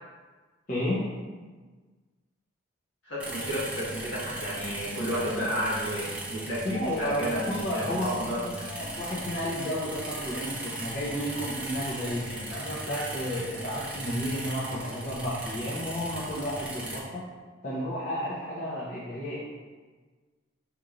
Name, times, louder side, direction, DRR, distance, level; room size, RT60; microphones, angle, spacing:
voice 1, 0.7-1.1 6.6-8.2 8.7-17.2 17.6-19.4, equal, 40° left, -9 dB, 0.7 m, -32 dB
voice 2, 3.0-8.7, equal, 65° left, -8 dB, 1.5 m, -32 dB
sound 1, 3.2-17.0, right 1 dB, 5° right, 0.5 m, -38 dB
5.1 x 2.9 x 2.5 m, 1.4 s
head